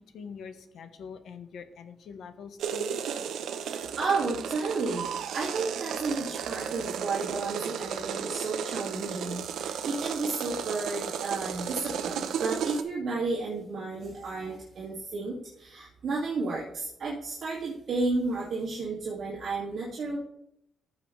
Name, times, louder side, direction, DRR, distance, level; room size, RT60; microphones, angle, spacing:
voice 1, 0.1-3.0, left 6 dB, 70° left, 9 dB, 1.1 m, -43 dB
sound 1, 2.6-12.8, right 8 dB, 80° right, 0.8 m, -34 dB
voice 2, 3.6-20.2, right 3 dB, 50° right, -6 dB, 2.3 m, -32 dB
14.5 x 6.9 x 3.3 m, 0.76 s
cardioid pair, 145°, 0 cm